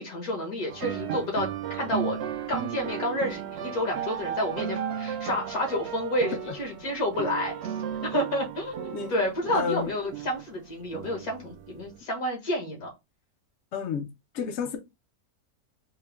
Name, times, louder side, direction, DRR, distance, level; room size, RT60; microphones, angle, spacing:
voice 1, 0.0-2.2 2.5-7.5 8.0-12.9, left 1 dB, 75° left, 1.9 m, -30 dB
sound 1, 0.7-12.0, right 9 dB, 65° right, 0.6 m, -35 dB
voice 2, 9.5-9.9 13.7-14.1 14.3-14.8, left 6 dB, 60° left, 0.9 m, -30 dB
4.5 x 2.1 x 3.3 m
omnidirectional pair, 1.6 m